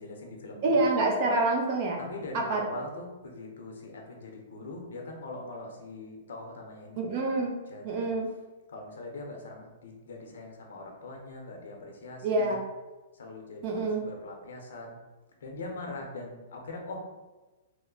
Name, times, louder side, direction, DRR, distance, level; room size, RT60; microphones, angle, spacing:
voice 1, 0.0-0.8 2.0-7.4 7.7-8.1 8.7-12.6 13.1-15.0 15.4-17.0, left 2 dB, 80° left, 1 dB, 0.8 m, -42 dB
voice 2, 0.6-2.0 2.3-2.6 7.0-7.5 7.8-8.3 12.2-12.6 13.6-14.0, right 2 dB, 35° right, 0 dB, 0.6 m, -26 dB
3.1 x 2.1 x 3.9 m, 1.2 s
hypercardioid pair, 160°, 0 cm